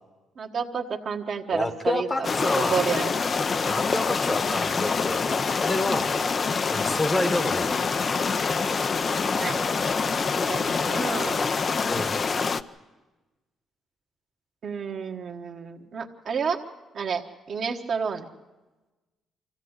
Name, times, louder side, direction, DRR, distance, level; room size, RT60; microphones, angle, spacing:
voice 1, 0.4-2.3 2.5-3.1 6.4-6.7 9.4-9.6 10.4-11.5 14.6-16.6 16.9-18.3, right 6 dB, 55° right, 3 dB, 1.4 m, -30 dB
voice 2, 1.5-2.8 3.6-5.2 5.6-6.1 6.6-7.8 11.9-12.2, left 2 dB, 20° left, 10 dB, 1.1 m, -28 dB
sound 1, 2.2-12.6, left 5 dB, 40° left, 0.6 m, -26 dB
24.0 x 15.5 x 8.1 m, 1.2 s
cardioid pair, 90°, 0 cm